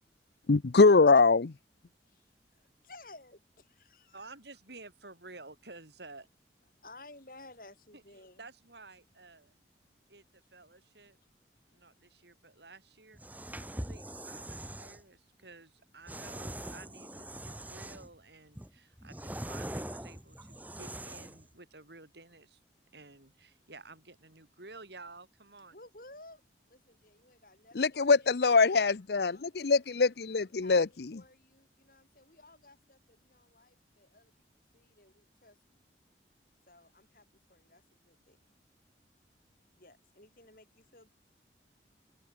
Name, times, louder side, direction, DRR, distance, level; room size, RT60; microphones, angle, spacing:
voice 1, 0.5-1.5 27.8-30.9, left 4 dB, 65° left, 0.6 m, -23 dB
voice 2, 2.1-4.4 6.8-8.5 25.7-29.6 30.3-34.3 34.7-35.8 36.7-38.4 39.7-41.1, left 2 dB, 50° left, 8.0 m, -56 dB
voice 3, 4.1-6.3 7.9-8.0 8.4-9.5 10.1-11.2 11.7-13.2 13.6-22.6 22.9-25.7, right 3 dB, 70° right, 5.0 m, -52 dB
sound 1, 13.1-15.0 16.1-18.2 18.6-21.5, right 1 dB, 10° right, 2.4 m, -42 dB
open air
head